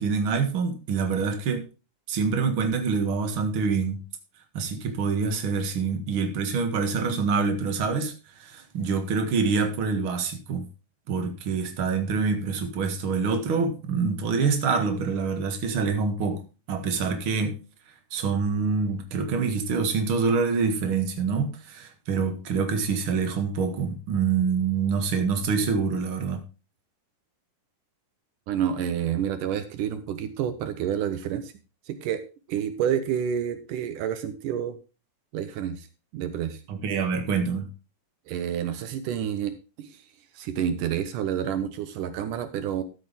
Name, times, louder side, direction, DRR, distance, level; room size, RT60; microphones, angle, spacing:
voice 1, 0.0-1.6 2.1-4.0 4.5-10.7 11.1-16.4 16.7-17.6 18.1-26.4 36.7-37.7, right 5 dB, 45° right, 5 dB, 2.2 m, -26 dB
voice 2, 28.5-31.5 31.9-32.2 32.5-34.8 35.3-35.9 36.1-36.6 38.3-40.0 40.3-42.8, right 9 dB, 80° right, 10 dB, 2.4 m, -29 dB
13.0 x 8.5 x 3.5 m, 0.31 s
omnidirectional pair, 3.7 m